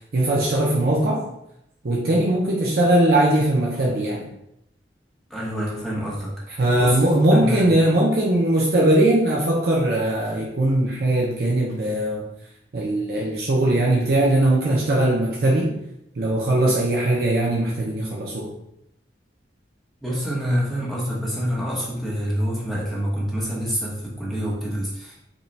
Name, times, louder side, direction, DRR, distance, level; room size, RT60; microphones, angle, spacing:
voice 1, 0.1-1.2 1.8-4.3 6.6-12.2 12.7-15.8 16.2-18.5, right 1 dB, 55° right, -3 dB, 0.6 m, -20 dB
voice 2, 5.3-6.3 6.8-7.0 7.3-7.7 20.0-25.2, equal, ahead, -5 dB, 0.9 m, -26 dB
5.1 x 2.3 x 3.2 m, 0.81 s
head